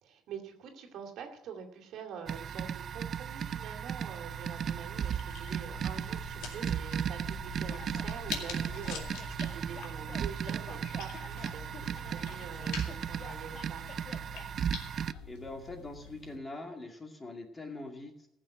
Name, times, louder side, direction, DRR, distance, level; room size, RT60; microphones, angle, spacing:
voice 1, 0.0-14.1, right 7 dB, 65° right, 3 dB, 2.3 m, -46 dB
sound 1, 2.3-15.1, right 8 dB, 45° right, 0.4 m, -36 dB
sound 2, 4.3-16.4, left 5 dB, 80° left, 2.2 m, -46 dB
sound 3, 7.7-14.5, left 5 dB, 50° left, 1.5 m, -50 dB
voice 2, 15.2-18.3, left 2 dB, 20° left, 3 dB, 2.2 m, -43 dB
15.0 x 6.3 x 7.8 m, 0.82 s
cardioid pair, 110°, 0 cm